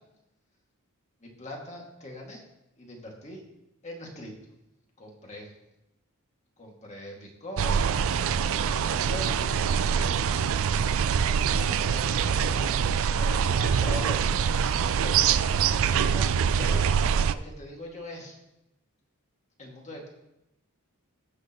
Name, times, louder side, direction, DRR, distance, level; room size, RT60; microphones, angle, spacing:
voice 1, 1.2-2.4 2.8-3.4 3.8-4.3 5.0-5.5 6.6-7.9 8.1-10.5 11.4-12.8 13.1-14.4 15.0-15.6 15.9-16.9 17.3-18.4 19.6-20.1, left 1 dB, 30° left, -1 dB, 2.1 m, -41 dB
sound 1, 7.6-17.3, right 7 dB, 65° right, 0.4 m, -24 dB
17.5 x 6.5 x 3.0 m, 0.88 s
head